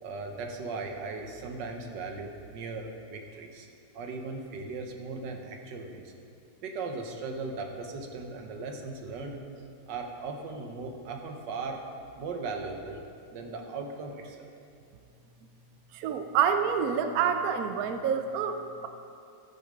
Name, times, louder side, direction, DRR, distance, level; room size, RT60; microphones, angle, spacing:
voice 1, 0.0-3.7 3.9-6.1 6.6-9.4 9.9-11.8 12.2-13.0 13.3-14.5, right 3 dB, 90° right, 3 dB, 1.6 m, -38 dB
voice 2, 15.9-18.9, right 7 dB, 65° right, 8 dB, 1.0 m, -27 dB
13.0 x 6.8 x 5.1 m, 2.6 s
omnidirectional pair, 1.8 m